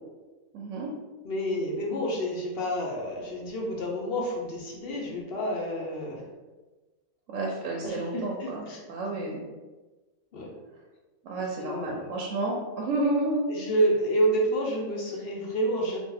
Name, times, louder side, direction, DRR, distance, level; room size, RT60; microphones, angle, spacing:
voice 1, 0.5-0.9 7.3-9.4 11.2-13.5, right 2 dB, 70° right, -1 dB, 0.9 m, -30 dB
voice 2, 1.2-6.2 7.8-8.8 10.3-10.5 11.3-12.1 13.5-16.0, right 1 dB, 55° left, -2 dB, 0.7 m, -29 dB
2.8 x 2.3 x 3.8 m, 1.2 s
omnidirectional pair, 1.4 m